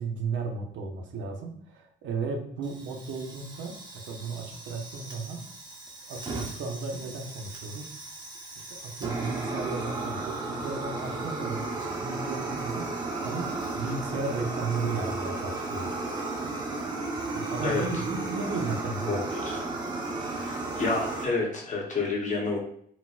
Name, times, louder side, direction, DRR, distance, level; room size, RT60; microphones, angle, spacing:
voice 1, 0.0-5.5 6.1-7.9 8.6-15.9 17.3-19.2, right 4 dB, 75° right, 2 dB, 0.7 m, -35 dB
Fire, 2.6-21.2, right 3 dB, 20° right, 0.8 m, -34 dB
voice 2, 19.1-19.6 20.2-22.6, left 3 dB, 40° left, 0 dB, 0.9 m, -29 dB
4.1 x 2.1 x 2.4 m, 0.63 s
cardioid pair, 120°, 19 cm